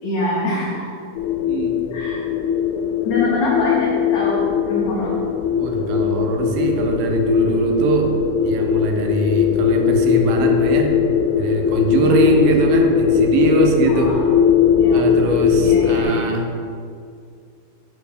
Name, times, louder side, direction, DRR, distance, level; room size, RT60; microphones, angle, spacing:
voice 1, 0.0-0.9 1.9-2.2 3.0-5.2 12.0-12.2 13.9-14.2 14.8-15.0 15.6-16.4, left 2 dB, 65° left, -6 dB, 2.0 m, -24 dB
sound 1, 1.2-16.0, left 8 dB, 85° left, 2.7 m, -19 dB
voice 2, 1.4-2.0 5.6-8.1 8.4-11.0 11.4-14.2 14.9-16.5, right 3 dB, 75° right, 3 dB, 2.3 m, -21 dB
8.2 x 3.7 x 6.4 m, 2.2 s
omnidirectional pair, 4.7 m